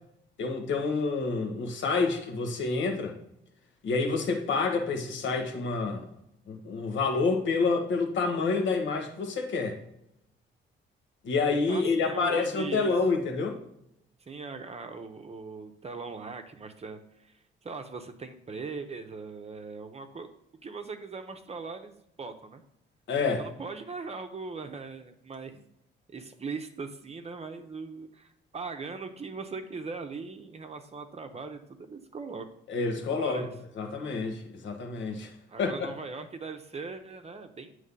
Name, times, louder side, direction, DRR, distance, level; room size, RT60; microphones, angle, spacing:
voice 1, 0.4-3.1 3.8-6.0 6.5-9.8 11.2-13.6 23.1-23.4 32.7-33.4 33.8-35.3 35.6-35.9, left 4 dB, 75° left, 1.3 m, -28 dB
voice 2, 11.7-12.9 14.3-17.3 17.6-20.3 20.6-22.6 23.4-25.7 26.1-31.6 31.9-32.5 33.1-33.5 35.5-37.8, right 4 dB, 30° right, 0.8 m, -40 dB
8.1 x 3.2 x 5.3 m
cardioid pair, 90°, 20 cm